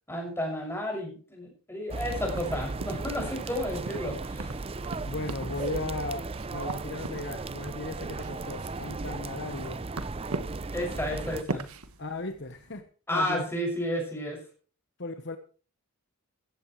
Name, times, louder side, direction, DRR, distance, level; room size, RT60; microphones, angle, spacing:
voice 1, 0.1-4.5 10.7-11.7 13.1-14.4, left 1 dB, 10° left, 0 dB, 6.4 m, -32 dB
sound 1, 1.9-11.4, right 3 dB, 25° right, 0.5 m, -36 dB
sound 2, 2.2-12.8, right 2 dB, 80° right, 1.5 m, -42 dB
voice 2, 5.0-9.9 12.0-13.4 15.0-15.4, left 2 dB, 50° left, 7 dB, 1.2 m, -36 dB
16.0 x 15.5 x 3.2 m, 0.39 s
head